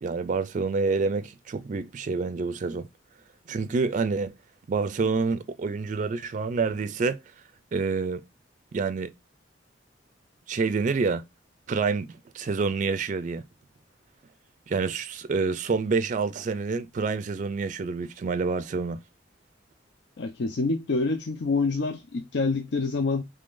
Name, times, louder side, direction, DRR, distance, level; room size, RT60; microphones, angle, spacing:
voice 1, 0.0-2.9 3.5-4.3 4.7-7.2 7.7-8.3 8.7-9.1 10.5-11.2 11.7-13.4 14.7-19.0, right 4 dB, 40° right, 0.4 m, -27 dB
voice 2, 20.2-23.2, left 3 dB, 65° left, 0.5 m, -27 dB
3.7 x 3.3 x 2.4 m
head